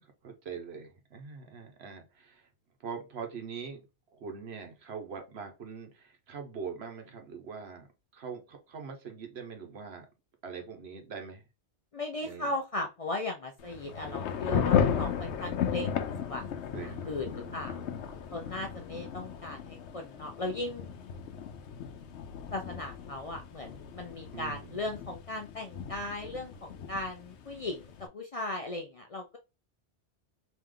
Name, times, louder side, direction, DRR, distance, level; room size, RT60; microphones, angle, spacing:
voice 1, 0.0-2.5 2.8-3.8 4.1-10.1 10.4-11.4 12.2-12.5 16.7-17.9 24.3-24.8, right 6 dB, 70° right, 5 dB, 1.2 m, -43 dB
voice 2, 11.9-16.4 16.8-17.8 18.3-20.9 22.5-29.4, left 2 dB, 45° left, 3 dB, 0.5 m, -37 dB
Thunder / Rain, 13.6-28.1, left 8 dB, 85° left, 0.9 m, -35 dB
3.2 x 3.0 x 3.7 m, 0.27 s
omnidirectional pair, 1.1 m